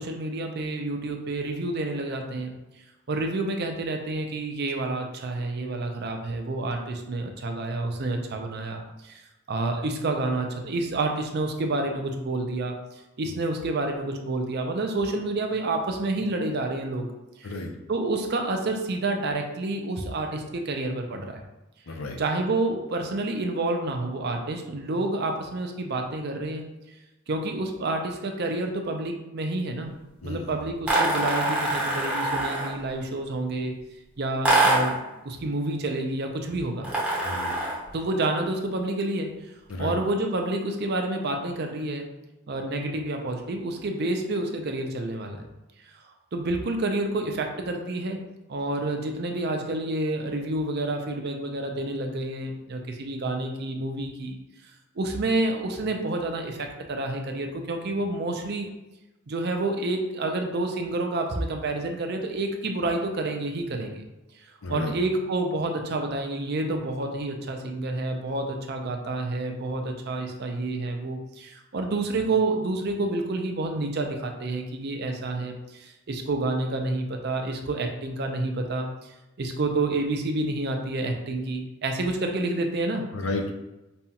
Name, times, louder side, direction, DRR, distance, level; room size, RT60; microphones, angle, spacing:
voice 1, 0.0-2.6 3.1-9.2 9.5-12.8 13.2-17.1 17.4-17.5 17.9-21.4 22.2-26.6 27.3-29.9 30.2-33.8 34.2-36.9 37.9-39.3 39.8-42.1 42.5-45.5 46.3-48.2 48.5-54.4 55.0-58.7 59.3-64.0 64.7-79.1 79.4-83.1, right 2 dB, 50° right, 3 dB, 0.5 m, -29 dB
voice 2, 21.9-22.2 30.2-30.5 37.2-37.6 39.7-40.0 64.6-64.9 83.1-83.5, left 2 dB, 80° left, 3 dB, 0.6 m, -32 dB
sound 1, 30.9-32.8 34.4-35.0 36.8-37.9, right 2 dB, 5° right, 0.7 m, -24 dB
5.4 x 2.4 x 2.8 m, 1.0 s
head